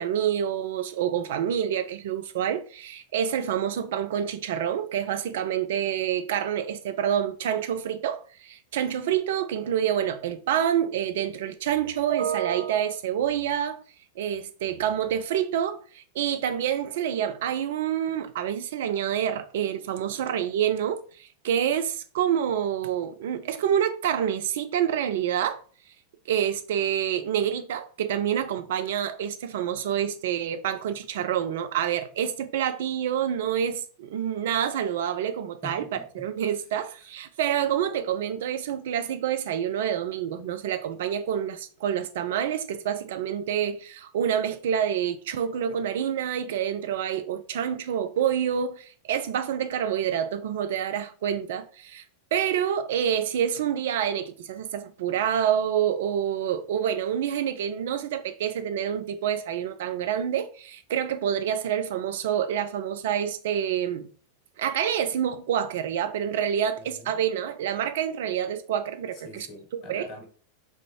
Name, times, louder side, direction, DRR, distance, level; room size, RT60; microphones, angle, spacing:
voice 1, 0.0-13.8 14.2-25.6 26.3-52.0 52.3-64.1 64.6-69.5 69.9-70.1, right 9 dB, 55° right, 0.3 m, -27 dB
voice 2, 35.6-36.3 66.8-67.1 69.1-70.2, left 1 dB, 35° left, 0.9 m, -44 dB
3.5 x 2.5 x 3.0 m
figure-of-eight pair, 90°, 0 cm